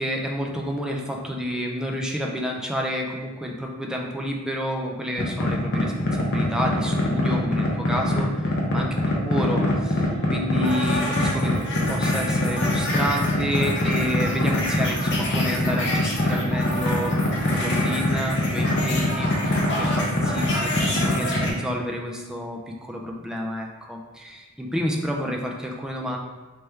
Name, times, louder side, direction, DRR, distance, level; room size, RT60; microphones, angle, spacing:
voice 1, 0.0-8.9 9.3-11.5 11.9-17.2 17.5-26.2, equal, 5° right, 0 dB, 0.3 m, -30 dB
sound 1, 5.2-21.5, left 1 dB, 55° left, 0.7 m, -23 dB
3.3 x 3.2 x 3.2 m, 1.2 s
head